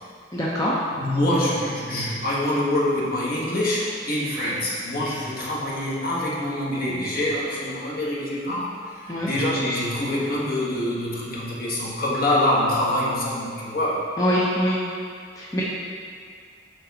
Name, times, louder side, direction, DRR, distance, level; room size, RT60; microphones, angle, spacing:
voice 1, 0.3-0.7 9.1-9.3 14.2-14.8 15.3-15.6, equal, 15° left, -7 dB, 0.7 m, -23 dB
voice 2, 0.9-14.1, left 1 dB, 50° left, -5 dB, 1.4 m, -25 dB
6.8 x 5.5 x 4.1 m, 2.2 s
head